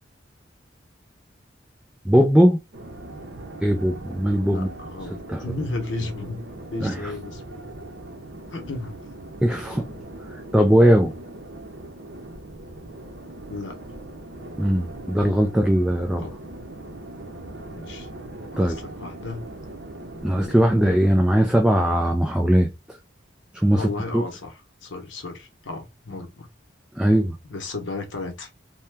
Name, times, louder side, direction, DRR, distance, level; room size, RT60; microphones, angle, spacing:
voice 1, 2.1-2.6 3.6-4.7 5.3-5.4 6.8-6.9 9.4-9.9 10.5-11.1 14.6-16.2 18.6-18.8 20.2-23.0 23.5-24.2 27.0-27.4, equal, 5° right, 0.3 m, -19 dB
sound 1, 2.7-21.1, right 1 dB, 65° right, 0.7 m, -40 dB
voice 2, 4.5-6.4 6.7-7.7 8.5-9.0 13.5-13.8 16.2-16.4 17.7-18.1 18.5-19.4 23.8-26.5 27.4-28.5, left 3 dB, 90° left, 0.8 m, -34 dB
2.8 x 2.2 x 3.3 m
head